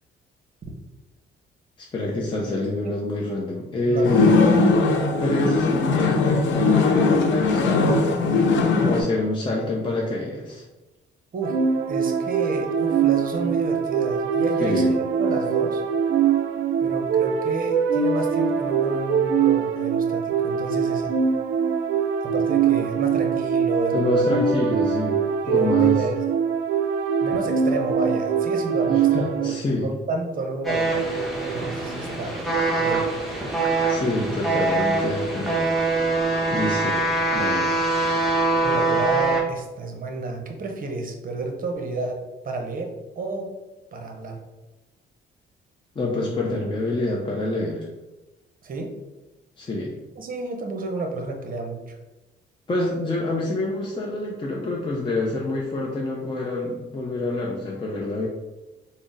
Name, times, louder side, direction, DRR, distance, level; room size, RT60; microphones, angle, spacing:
voice 1, 1.8-4.3 5.2-8.2 8.8-10.6 14.6-14.9 23.9-25.2 25.5-26.1 28.9-29.9 33.9-35.9 36.5-37.0 37.3-37.7 46.0-47.9 49.6-49.9 52.7-58.3, left 2 dB, 25° left, -3 dB, 0.5 m, -26 dB
voice 2, 3.9-4.4 11.3-11.6 11.9-15.8 16.8-21.1 22.2-24.4 25.4-26.2 27.2-32.3 32.8-33.4 38.6-43.5 43.9-44.4 48.6-48.9 50.2-52.0, right 2 dB, 45° right, 3 dB, 0.7 m, -30 dB
sound 1, 4.0-9.0, left 3 dB, 70° left, 0.5 m, -19 dB
sound 2, 11.4-29.5, right 7 dB, 80° right, 0.4 m, -23 dB
sound 3, 30.6-39.4, right 2 dB, ahead, 0.9 m, -23 dB
3.8 x 2.0 x 3.8 m, 1.1 s
cardioid pair, 90°, 20 cm